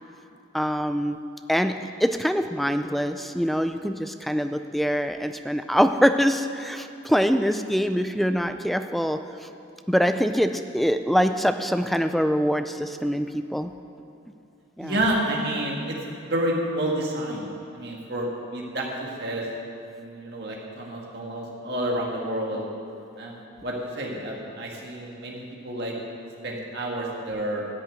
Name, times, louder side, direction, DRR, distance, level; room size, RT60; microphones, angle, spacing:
voice 1, 0.5-1.2 1.5-1.7 2.0-9.5 9.9-13.7 14.8-15.0, equal, ahead, 8 dB, 0.3 m, -24 dB
voice 2, 14.8-17.5 17.7-19.4 19.9-22.6 23.2-25.9 26.4-27.7, right 1 dB, 55° right, -2 dB, 1.9 m, -29 dB
13.0 x 6.6 x 9.1 m, 2.7 s
head